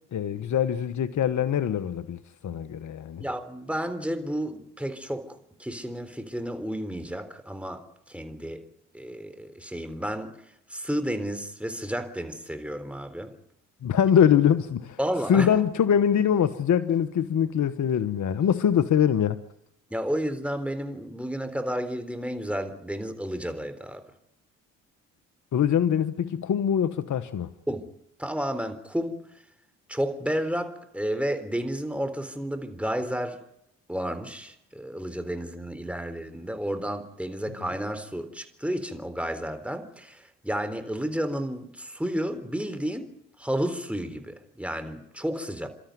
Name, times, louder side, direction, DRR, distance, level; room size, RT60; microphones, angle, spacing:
voice 1, 0.1-3.2 13.8-15.0 15.3-19.4 25.5-27.5, left 8 dB, 55° left, 1.3 m, -23 dB
voice 2, 3.2-8.6 8.9-10.3 10.7-13.3 15.0-15.5 19.9-24.0 27.7-27.9 28.2-29.2 29.9-33.4 33.9-45.7, equal, 5° right, 3.7 m, -31 dB
30.0 x 13.0 x 9.5 m
supercardioid pair, 60°, 36 cm